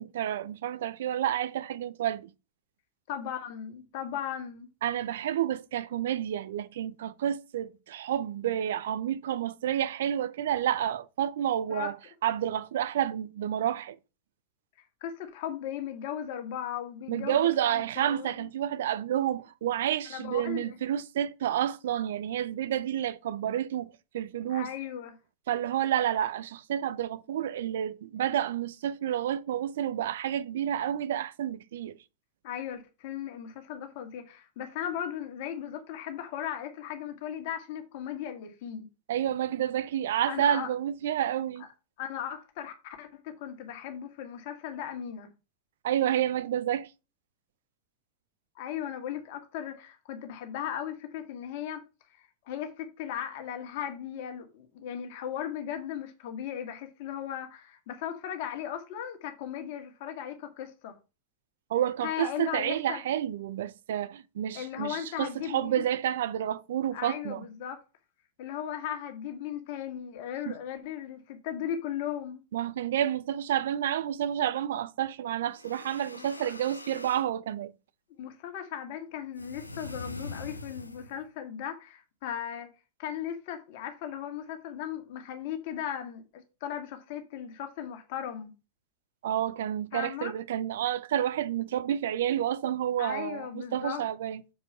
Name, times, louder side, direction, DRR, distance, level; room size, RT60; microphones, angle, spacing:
voice 1, 0.0-2.3 4.8-12.0 12.2-14.0 17.1-24.7 25.5-32.0 39.1-41.7 45.8-46.9 61.7-67.5 70.5-70.6 72.5-77.7 89.2-94.4, right 10 dB, 60° right, 0.6 m, -30 dB
voice 2, 3.1-4.7 11.7-11.9 15.0-18.5 20.1-20.8 24.5-25.2 32.4-38.9 40.3-40.7 42.0-45.3 48.6-51.8 52.1-61.0 62.0-63.0 64.5-65.9 66.9-67.8 68.4-72.4 76.1-76.5 78.2-82.7 83.0-88.5 89.9-90.3 93.0-94.0, left 9 dB, 50° left, 1.7 m, -37 dB
sound 1, 75.5-77.3 79.4-81.2, left 2 dB, 85° left, 0.7 m, -43 dB
7.2 x 4.7 x 5.6 m
figure-of-eight pair, 90°, 0 cm